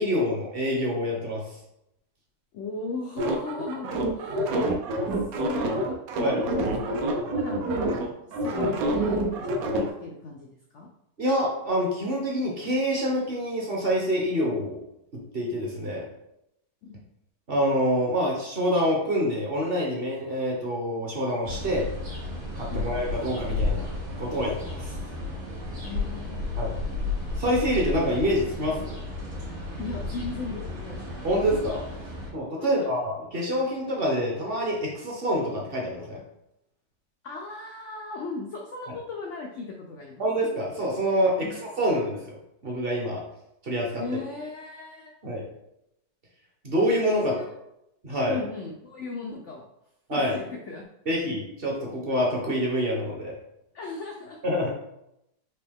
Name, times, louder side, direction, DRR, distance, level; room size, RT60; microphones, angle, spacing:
voice 1, 0.0-1.6 6.2-6.4 11.2-14.8 15.3-16.1 17.5-21.9 22.6-24.9 26.6-26.7 27.4-28.9 31.2-31.8 32.3-36.2 40.2-41.5 41.8-42.4 42.6-43.2 43.6-44.0 45.2-45.4 46.6-47.3 48.0-48.4 50.1-50.3 51.1-53.3 54.4-54.7, equal, 45° right, -2 dB, 0.8 m, -26 dB
voice 2, 2.5-4.5 5.4-6.6 6.8-6.9 7.3-7.9 8.4-9.5 10.0-10.9 16.8-17.0 22.7-22.9 25.8-26.6 29.8-31.0 32.6-32.9 37.2-40.2 41.4-41.5 44.0-45.1 47.3-47.5 48.3-49.6 50.1-50.9 53.7-54.4, left 3 dB, 90° left, 1 dB, 0.6 m, -37 dB
sound 1, 3.2-9.9, right 1 dB, 70° right, 1.0 m, -27 dB
sound 2, 21.4-32.3, left 2 dB, 85° right, 2.1 m, -33 dB
4.6 x 2.9 x 3.4 m, 0.82 s
omnidirectional pair, 1.9 m